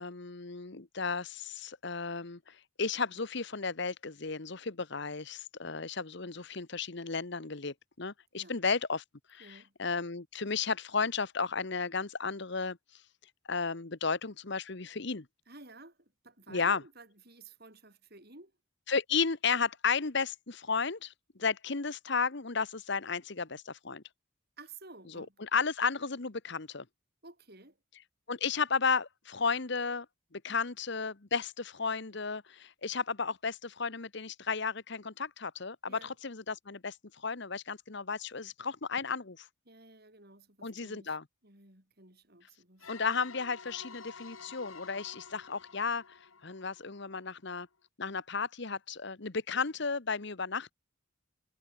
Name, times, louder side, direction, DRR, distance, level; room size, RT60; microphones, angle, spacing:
voice 1, 0.0-9.0 9.3-12.8 13.5-15.3 16.5-16.8 18.9-21.1 21.4-24.0 25.1-26.8 28.3-30.1 30.3-39.5 40.6-41.2 42.9-46.2 46.4-47.7 48.0-50.7, left 5 dB, 55° left, 1.1 m, -33 dB
voice 2, 9.4-9.7 15.5-18.5 24.6-25.4 27.2-27.8 35.9-36.1 39.7-41.2 41.4-42.9, right 3 dB, 50° right, 6.2 m, -53 dB
sound 1, 42.8-47.4, left 5 dB, 80° left, 2.1 m, -50 dB
head